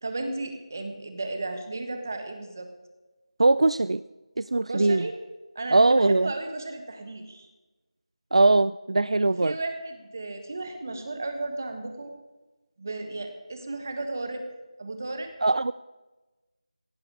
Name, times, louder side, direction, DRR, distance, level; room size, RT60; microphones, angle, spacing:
voice 1, 0.0-2.7 4.7-5.1 5.5-7.5 9.3-12.1 12.8-14.4 14.8-15.3, right 2 dB, 30° right, 6 dB, 1.4 m, -34 dB
voice 2, 3.4-4.0 4.4-5.1 5.7-6.3 8.3-9.6 15.4-15.7, right 2 dB, 65° right, 16 dB, 0.3 m, -21 dB
17.5 x 11.0 x 4.8 m, 1.2 s
figure-of-eight pair, 175°, 3 cm